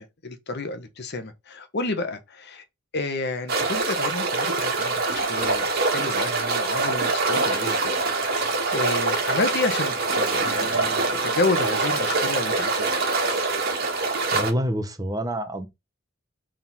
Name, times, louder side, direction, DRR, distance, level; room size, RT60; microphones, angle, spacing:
voice 1, 0.0-2.6 2.9-8.5 8.7-12.9, left 3 dB, 55° left, 1.1 m, -30 dB
sound 1, 3.5-14.5, right 3 dB, 50° right, 1.8 m, -24 dB
voice 2, 14.3-15.7, equal, 20° right, 0.9 m, -27 dB
4.6 x 3.8 x 5.5 m
head